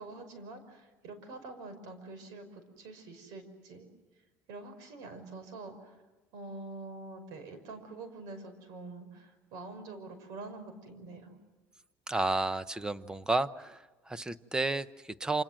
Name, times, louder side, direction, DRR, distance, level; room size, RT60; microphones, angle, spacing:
voice 1, 0.0-3.9 4.5-6.0 6.3-11.3, right 3 dB, 75° right, 10 dB, 5.7 m, -46 dB
voice 2, 12.1-15.4, right 2 dB, 10° right, 14 dB, 0.9 m, -32 dB
27.5 x 27.0 x 7.7 m, 1.2 s
cardioid pair, 130°, 6 cm